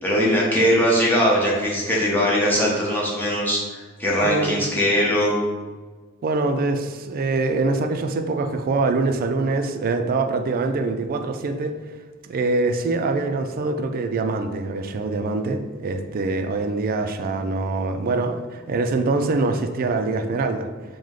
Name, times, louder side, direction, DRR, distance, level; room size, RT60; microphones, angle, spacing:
voice 1, 0.0-5.4, equal, 10° left, -6 dB, 0.9 m, -20 dB
voice 2, 4.2-4.6 6.2-11.7 12.2-20.7, right 3 dB, 45° right, 6 dB, 0.3 m, -24 dB
4.8 x 2.1 x 3.7 m, 1.4 s
head